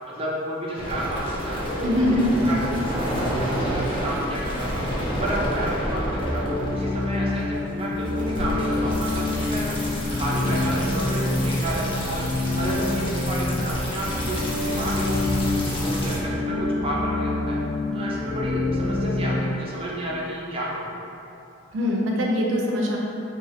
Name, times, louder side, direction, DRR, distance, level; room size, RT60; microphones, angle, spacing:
voice 1, 0.1-9.8 10.1-12.3 12.5-17.6 17.9-20.9, right 1 dB, 30° right, -5 dB, 0.5 m, -31 dB
sound 1, 0.8-16.2, equal, 25° left, 0.5 m, -29 dB
voice 2, 1.8-2.3 21.7-23.0, left 1 dB, 90° right, -2 dB, 0.4 m, -22 dB
sound 2, 6.2-19.3, left 2 dB, 10° right, 1.3 m, -27 dB
2.8 x 2.2 x 3.0 m, 2.8 s
head